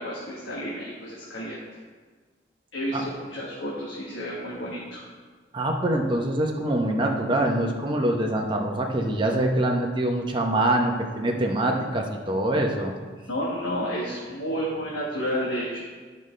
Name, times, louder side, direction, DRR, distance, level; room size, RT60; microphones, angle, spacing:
voice 1, 0.0-1.6 2.7-5.0 13.2-15.8, equal, 90° left, -5 dB, 1.4 m, -31 dB
voice 2, 5.5-12.9, right 1 dB, 25° right, 0 dB, 0.8 m, -24 dB
11.5 x 5.3 x 3.3 m, 1.5 s
head